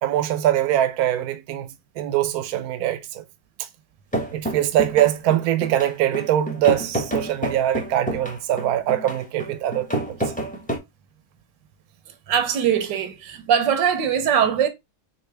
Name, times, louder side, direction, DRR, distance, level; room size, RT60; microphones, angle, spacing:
voice 1, 0.0-1.7 2.0-3.2 4.3-10.2, right 12 dB, 70° right, 1.0 m, -22 dB
sound 1, 4.1-10.8, right 1 dB, 5° left, 0.9 m, -28 dB
voice 2, 12.3-14.7, right 8 dB, 90° right, 1.5 m, -21 dB
3.9 x 3.7 x 3.4 m
omnidirectional pair, 1.9 m